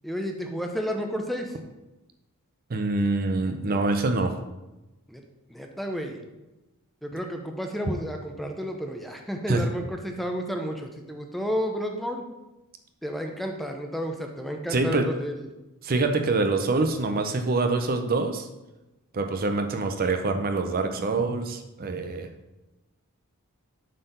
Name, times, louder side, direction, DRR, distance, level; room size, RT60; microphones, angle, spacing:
voice 1, 0.0-1.5 5.1-5.2 5.5-6.2 7.0-12.3 13.0-15.5, equal, ahead, 3 dB, 0.7 m, -31 dB
voice 2, 2.7-4.3 9.5-9.6 14.7-15.1 15.8-18.5 19.1-22.3, right 3 dB, 40° right, 6 dB, 0.6 m, -25 dB
7.4 x 4.5 x 5.2 m, 1.0 s
head